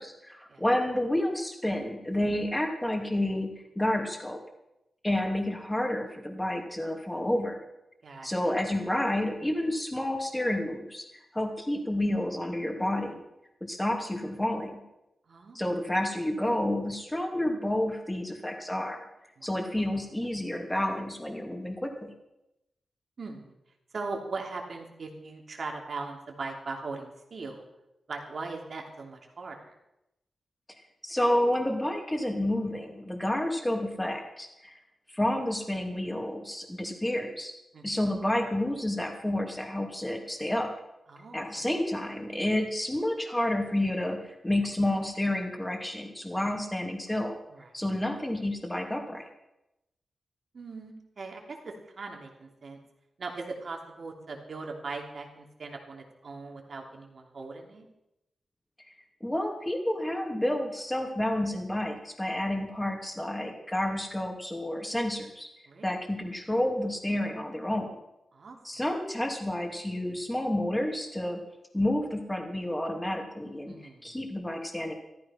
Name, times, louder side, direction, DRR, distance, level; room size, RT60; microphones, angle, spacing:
voice 1, 0.0-3.5 3.8-4.4 5.0-7.6 8.2-11.1 11.3-13.2 13.6-14.8 15.5-19.0 19.4-22.1 31.0-34.7 35.1-37.5 37.8-40.7 41.3-47.4 47.7-49.3 59.2-65.5 65.8-67.9 68.6-71.4 71.7-73.7 74.0-74.9, left 1 dB, 10° left, 3 dB, 2.6 m, -30 dB
voice 2, 23.2-23.5 23.9-27.6 28.1-29.8 37.7-37.8 41.1-41.6 47.5-47.7 50.5-52.8 53.2-57.9 65.7-65.9 68.3-68.6 73.7-74.2, right 3 dB, 55° right, 2 dB, 3.1 m, -40 dB
14.5 x 14.0 x 5.7 m, 0.90 s
wide cardioid pair, 105°, 0 cm